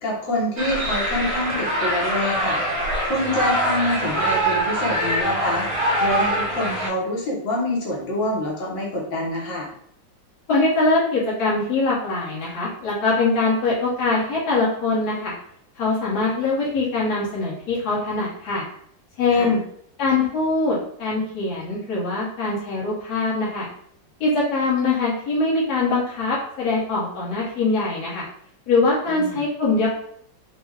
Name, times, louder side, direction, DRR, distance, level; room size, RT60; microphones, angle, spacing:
voice 1, 0.0-2.6 3.0-5.7 6.0-9.7 19.3-19.6 29.1-29.4, left 1 dB, 75° left, -3 dB, 1.9 m, -26 dB
sound 1, 0.6-6.9, right 1 dB, 80° right, 1.8 m, -23 dB
voice 2, 10.5-15.3 15.8-18.7 19.2-19.6 20.0-23.7 24.2-28.3 28.7-29.9, left 3 dB, 55° left, -7 dB, 1.7 m, -22 dB
4.9 x 2.3 x 3.5 m, 0.66 s
omnidirectional pair, 2.0 m